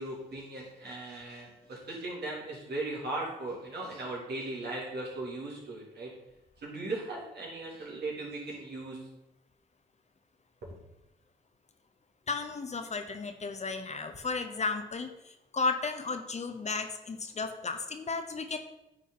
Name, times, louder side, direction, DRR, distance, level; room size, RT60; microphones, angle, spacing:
voice 1, 0.0-6.1 6.6-9.0, right 2 dB, 65° right, -3 dB, 2.5 m, -38 dB
voice 2, 12.3-18.6, left 4 dB, 40° left, 7 dB, 0.8 m, -34 dB
9.3 x 4.0 x 3.8 m, 0.90 s
supercardioid pair, 55°, 18 cm